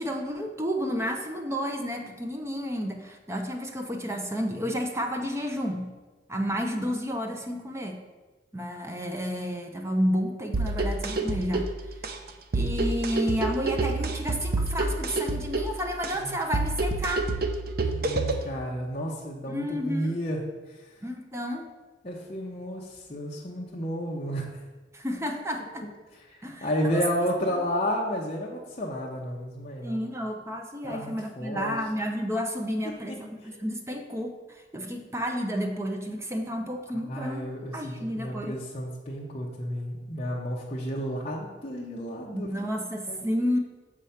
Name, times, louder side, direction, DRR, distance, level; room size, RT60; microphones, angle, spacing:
voice 1, 0.0-5.9 6.3-8.0 8.5-11.7 12.5-17.3 19.5-20.2 21.0-21.7 24.9-25.9 26.4-27.0 27.6-27.7 29.8-38.6 42.3-43.6, equal, 15° right, 3 dB, 0.7 m, -31 dB
sound 1, 10.5-18.5, right 2 dB, 55° right, 0.6 m, -28 dB
voice 2, 17.8-20.4 20.7-20.8 22.0-24.5 26.3-30.0 30.8-31.8 32.8-32.9 33.4-33.6 37.1-42.5 43.1-43.3, equal, 35° left, -4 dB, 0.9 m, -32 dB
6.8 x 4.9 x 5.7 m, 1.2 s
head